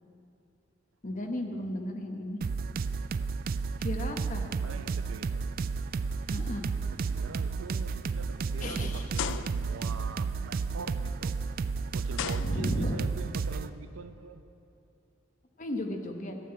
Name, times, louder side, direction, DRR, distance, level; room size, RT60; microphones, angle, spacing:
voice 1, 1.0-2.4 3.8-4.5 6.3-6.6 8.6-9.1 12.4-13.0 15.6-16.4, left 1 dB, 40° left, 3 dB, 1.1 m, -34 dB
sound 1, 2.4-13.7, right 5 dB, 45° right, 0.3 m, -32 dB
voice 2, 4.5-5.4 6.9-11.4 11.9-14.4, right 4 dB, 85° right, 11 dB, 0.6 m, -44 dB
sound 2, 5.3-10.9, equal, 5° left, 3.4 m, -52 dB
sound 3, 6.0-6.3 6.8-7.0 7.7-7.8 9.1-9.9 11.4-11.5 12.1-13.1, left 8 dB, 70° left, 0.4 m, -37 dB
13.0 x 7.7 x 8.7 m, 2.8 s
head